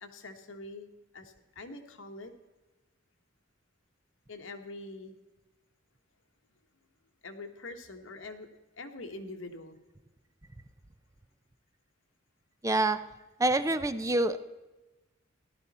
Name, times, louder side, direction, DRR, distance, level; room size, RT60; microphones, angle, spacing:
voice 1, 0.0-2.3 4.3-5.2 7.2-8.5 8.8-9.8, left 2 dB, 75° left, 5 dB, 1.4 m, -44 dB
voice 2, 12.6-13.0 13.4-14.4, right 2 dB, 15° right, 12 dB, 0.5 m, -26 dB
14.5 x 12.0 x 4.2 m, 1.1 s
head